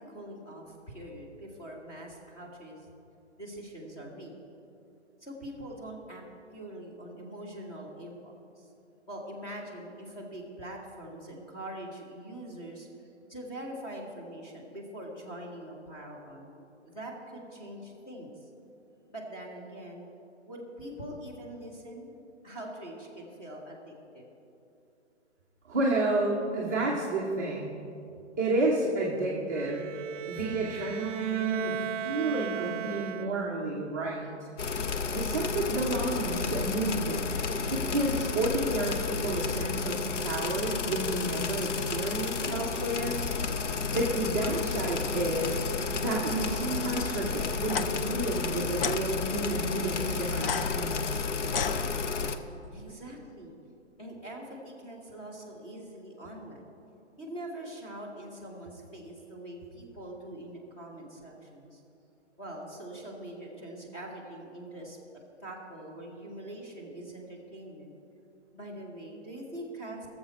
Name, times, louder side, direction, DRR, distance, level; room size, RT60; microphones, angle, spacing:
voice 1, 0.1-2.8 3.4-4.4 5.2-6.2 6.5-8.7 9.1-12.9 13.3-16.5 16.8-18.3 19.1-20.1 20.5-22.1 22.4-24.3 52.7-53.5 54.0-56.6 57.2-61.8 62.4-67.9 68.5-70.1, right 1 dB, 15° left, -3 dB, 1.3 m, -43 dB
voice 2, 25.7-27.7 28.4-29.8 30.3-34.3 35.1-37.3 37.7-43.2 43.9-45.6 45.9-51.2, right 2 dB, 15° right, -7 dB, 0.6 m, -30 dB
Bowed string instrument, 29.5-33.7, right 11 dB, 90° right, 0.5 m, -37 dB
sound 1, 34.6-52.4, left 5 dB, 85° left, 0.9 m, -32 dB
sound 2, 47.6-47.9 48.8-49.0 50.4-52.4, left 6 dB, 55° left, 0.5 m, -33 dB
17.5 x 7.2 x 4.1 m, 2.7 s
hypercardioid pair, 165°, 35 cm